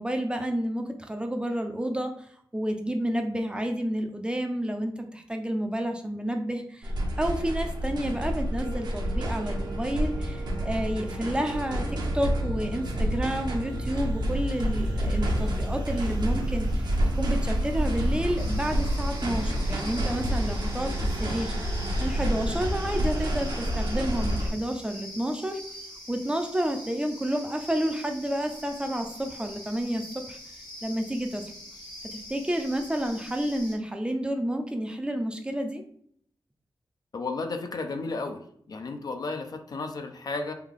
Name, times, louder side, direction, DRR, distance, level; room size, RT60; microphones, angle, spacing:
voice 1, 0.0-6.9 7.2-16.9 17.1-25.6 26.1-30.4 30.8-31.5 32.1-35.8, right 1 dB, 10° right, 4 dB, 0.5 m, -30 dB
sound 1, 6.8-24.5, equal, 60° right, 0.8 m, -28 dB
sound 2, 8.5-16.7, right 5 dB, 80° right, 1.2 m, -47 dB
sound 3, 18.4-33.7, left 1 dB, 75° left, 1.2 m, -44 dB
voice 2, 37.1-38.4 38.7-40.5, left 3 dB, 55° left, 6 dB, 0.5 m, -33 dB
3.3 x 2.3 x 3.6 m, 0.66 s
cardioid pair, 80°, 8 cm